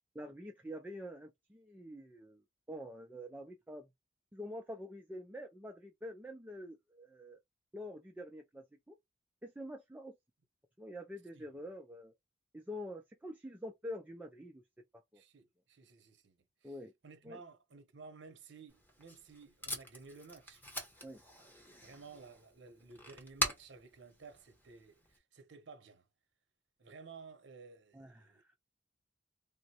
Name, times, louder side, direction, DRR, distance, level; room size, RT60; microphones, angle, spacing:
voice 1, 0.1-2.4 2.7-3.9 4.3-7.4 7.7-9.0 9.4-10.1 10.8-12.1 12.5-15.2 16.6-16.9 17.2-17.4 21.0-21.2 27.9-28.4, equal, 10° right, 0.4 m, -46 dB
voice 2, 15.1-16.8 17.0-20.7 21.8-26.0 26.8-28.6, right 4 dB, 70° right, 0.7 m, -55 dB
Packing tape duct tape, 18.7-25.2, equal, 10° left, 0.9 m, -43 dB
3.5 x 2.1 x 2.8 m
head